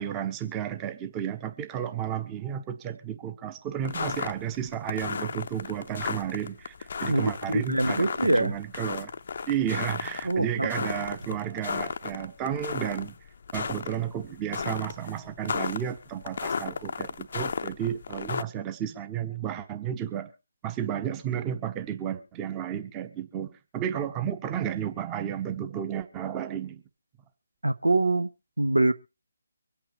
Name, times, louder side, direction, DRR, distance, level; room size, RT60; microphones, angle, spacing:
voice 1, 0.0-9.1 9.5-13.2 13.5-20.3 20.6-26.8, right 9 dB, 15° right, 0.9 m, -32 dB
sound 1, 3.8-18.4, left 5 dB, 50° left, 0.6 m, -34 dB
voice 2, 7.1-8.6 10.2-10.7 27.6-28.3 28.6-28.9, right 2 dB, 85° right, 0.8 m, -24 dB
24.5 x 8.5 x 3.1 m
figure-of-eight pair, 145°, 0 cm